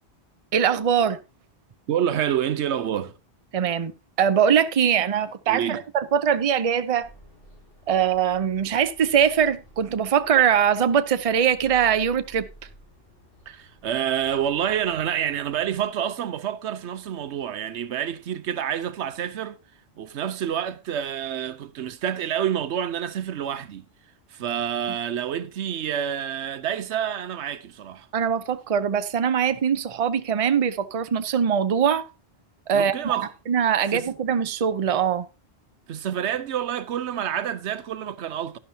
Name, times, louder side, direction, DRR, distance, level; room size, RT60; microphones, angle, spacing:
voice 1, 0.5-1.2 3.5-3.9 4.2-7.1 7.9-12.5 28.1-32.0 32.7-33.2 33.5-35.3, right 8 dB, 40° right, 0.6 m, -22 dB
voice 2, 1.9-3.2 5.5-5.8 13.5-19.6 20.0-23.8 24.3-28.1 32.7-33.3 33.9-34.1 35.9-38.6, right 9 dB, 90° right, 1.0 m, -28 dB
sound 1, 7.0-15.9, right 1 dB, 55° left, 7.7 m, -52 dB
11.0 x 11.0 x 2.8 m
omnidirectional pair, 1.1 m